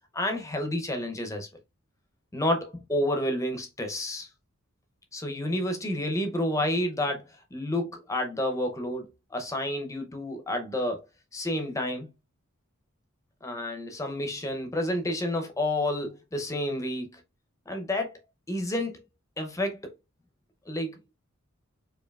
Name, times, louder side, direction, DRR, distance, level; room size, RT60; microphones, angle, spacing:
voice 1, 0.1-1.5 2.3-4.3 5.1-11.0 11.3-12.1 13.4-17.2 17.7-18.2 18.5-19.0 19.4-19.9 20.7-21.1, left 1 dB, 15° left, 0.5 m, -30 dB
4.5 x 2.6 x 2.3 m
head